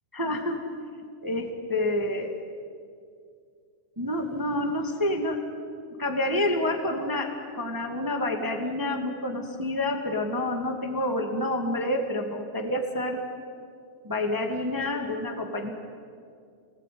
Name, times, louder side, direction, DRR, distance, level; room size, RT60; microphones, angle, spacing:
voice 1, 0.1-0.6 1.2-2.3 4.0-5.4 6.0-13.2 14.0-15.7, left 1 dB, 15° right, 4 dB, 0.8 m, -28 dB
29.0 x 21.0 x 9.5 m, 2.3 s
omnidirectional pair, 4.5 m